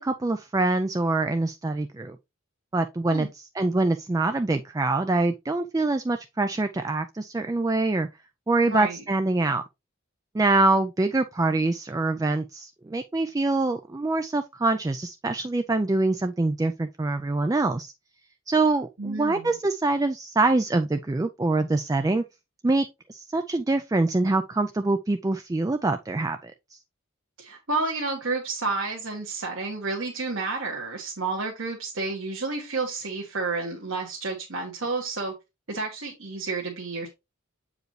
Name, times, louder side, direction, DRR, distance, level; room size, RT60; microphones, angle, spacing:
voice 1, 0.0-2.2 2.7-8.1 8.5-9.6 10.3-17.9 18.5-22.2 22.6-26.8, right 2 dB, 15° right, 0.3 m, -25 dB
voice 2, 8.7-9.0 19.0-19.5 27.4-35.3 35.7-37.1, right 3 dB, 65° right, 1.6 m, -30 dB
7.7 x 4.8 x 3.1 m
head